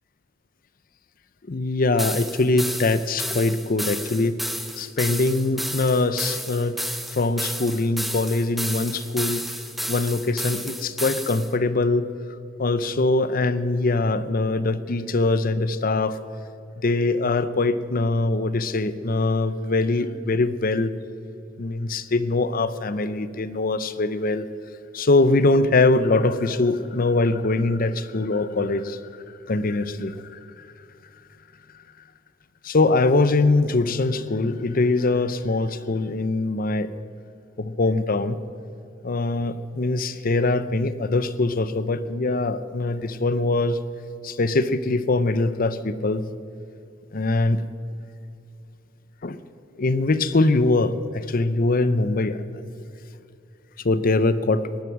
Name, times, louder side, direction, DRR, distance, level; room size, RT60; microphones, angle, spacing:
voice 1, 1.5-4.4 4.8-6.8 7.1-9.5 9.9-12.1 12.6-16.2 16.8-20.9 21.6-24.4 24.9-29.0 29.5-30.4 32.6-36.9 37.6-38.4 39.0-43.8 44.2-46.2 47.1-47.6 49.2-49.4 49.8-52.4 53.8-54.7, left 2 dB, 50° left, 13 dB, 0.7 m, -22 dB
sound 1, 2.0-11.5, equal, ahead, 0.7 m, -32 dB
18.5 x 11.0 x 6.0 m, 2.6 s
head